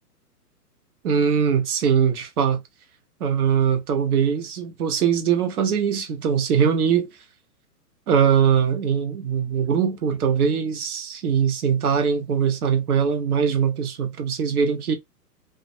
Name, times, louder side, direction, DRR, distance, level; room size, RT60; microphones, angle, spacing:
voice 1, 1.0-2.6 3.2-7.1 8.1-14.9, right 7 dB, 65° right, 0.9 m, -21 dB
2.4 x 2.2 x 2.6 m
hypercardioid pair, 125°, 49 cm